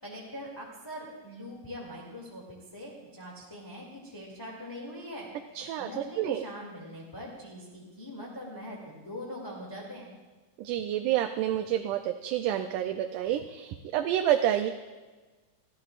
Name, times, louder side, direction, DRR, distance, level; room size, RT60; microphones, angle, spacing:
voice 1, 0.0-5.3 5.8-10.1, equal, 10° left, -4 dB, 2.0 m, -42 dB
voice 2, 5.6-6.5 10.6-14.7, right 11 dB, 80° right, 5 dB, 2.1 m, -29 dB
24.5 x 15.5 x 2.5 m, 1.3 s
omnidirectional pair, 3.7 m